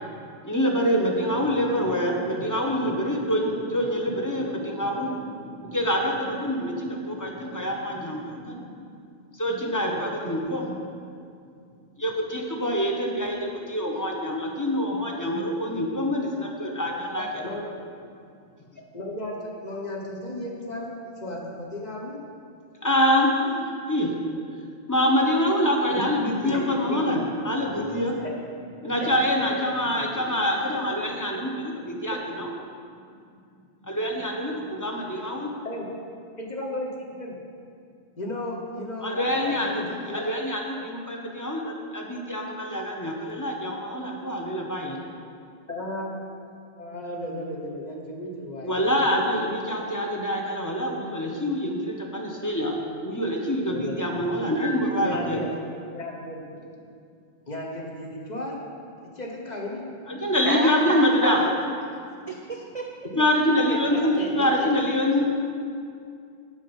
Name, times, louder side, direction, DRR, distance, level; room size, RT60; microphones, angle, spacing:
voice 1, 0.4-8.9 9.3-10.9 12.0-17.4 22.8-24.1 24.9-27.2 27.4-28.2 28.8-32.5 33.8-35.5 39.0-45.0 48.6-52.8 53.0-55.4 60.1-61.4 63.1-65.2, equal, 20° left, 0 dB, 0.9 m, -25 dB
voice 2, 18.9-20.9 21.2-22.2 26.4-26.6 26.9-27.3 28.2-28.3 30.4-30.5 35.1-35.3 35.6-35.9 36.4-37.4 38.2-40.3 45.7-46.3 46.8-49.0 53.7-54.2 55.0-55.5 55.9-56.6 57.5-58.6 59.0-59.8 63.1-63.2 64.0-64.7, left 1 dB, 40° left, -2 dB, 1.2 m, -34 dB
voice 3, 60.4-61.5 62.3-62.9 63.7-63.8, right 2 dB, 45° right, 1 dB, 0.4 m, -30 dB
7.3 x 5.2 x 7.1 m, 2.3 s
omnidirectional pair, 1.2 m